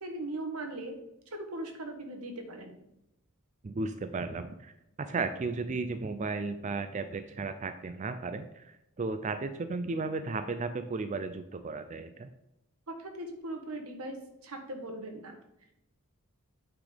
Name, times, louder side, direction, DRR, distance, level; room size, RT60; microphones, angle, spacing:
voice 1, 0.0-0.9 1.3-2.8 12.9-14.2 14.4-15.4, right 1 dB, 85° right, 4 dB, 1.5 m, -39 dB
voice 2, 3.6-4.7 5.0-12.3, right 3 dB, 35° right, 9 dB, 0.4 m, -34 dB
8.9 x 4.0 x 5.1 m, 0.86 s
head